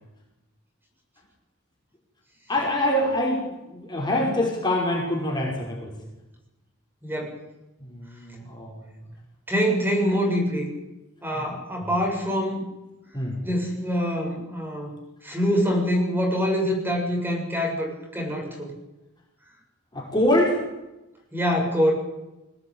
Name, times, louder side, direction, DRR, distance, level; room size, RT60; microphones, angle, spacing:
voice 1, 2.5-6.0 7.8-9.0 11.3-11.4 13.1-13.4 19.9-20.7, left 1 dB, 20° left, -2 dB, 5.4 m, -25 dB
voice 2, 7.0-7.3 9.5-10.7 11.2-12.6 13.4-14.9 15.2-18.7 21.3-21.9, equal, 10° right, 0 dB, 7.4 m, -25 dB
22.5 x 18.0 x 9.1 m, 0.99 s
head